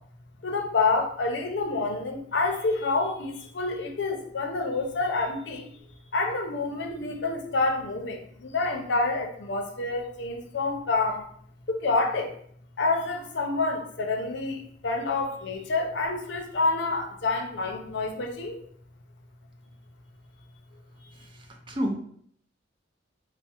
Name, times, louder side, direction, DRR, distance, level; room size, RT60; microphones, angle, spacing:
voice 1, 0.4-5.7 6.1-11.2 11.7-12.3 12.8-18.6, left 3 dB, 70° left, 3 dB, 0.6 m, -28 dB
voice 2, 21.1-22.0, equal, 25° right, 1 dB, 0.5 m, -31 dB
4.3 x 2.0 x 2.9 m, 0.62 s
head